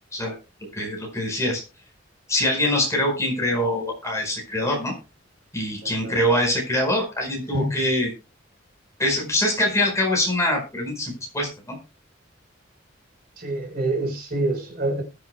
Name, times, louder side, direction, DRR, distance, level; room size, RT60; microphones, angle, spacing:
voice 1, 0.7-1.6 2.3-4.9 5.5-8.1 9.0-11.8, left 1 dB, 15° left, 4.7 m, -24 dB
voice 2, 13.4-15.0, right 2 dB, 50° right, 4.2 m, -26 dB
20.5 x 8.1 x 2.2 m
head